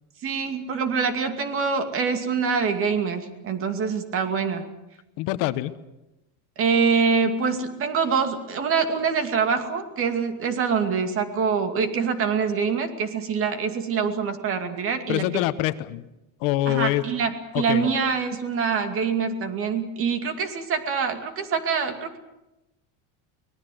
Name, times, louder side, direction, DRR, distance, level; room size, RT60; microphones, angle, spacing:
voice 1, 0.2-4.7 6.6-15.4 16.7-22.2, right 5 dB, 35° right, 8 dB, 2.5 m, -25 dB
voice 2, 5.2-5.7 15.1-16.1 16.4-17.1 17.5-17.9, left 16 dB, 60° left, 13 dB, 1.1 m, -25 dB
24.5 x 19.5 x 7.8 m, 0.95 s
cardioid pair, 160°, 37 cm